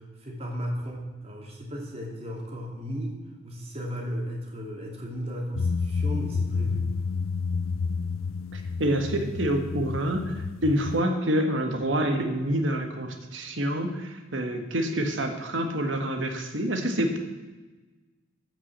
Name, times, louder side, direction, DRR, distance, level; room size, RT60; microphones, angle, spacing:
voice 1, 0.0-3.2 3.4-6.9, equal, 30° right, -1 dB, 2.7 m, -35 dB
sound 1, 5.6-11.0, left 4 dB, 90° left, 0.4 m, -30 dB
voice 2, 8.5-17.2, right 1 dB, 70° right, 5 dB, 1.6 m, -27 dB
14.0 x 6.1 x 7.4 m, 1.2 s
head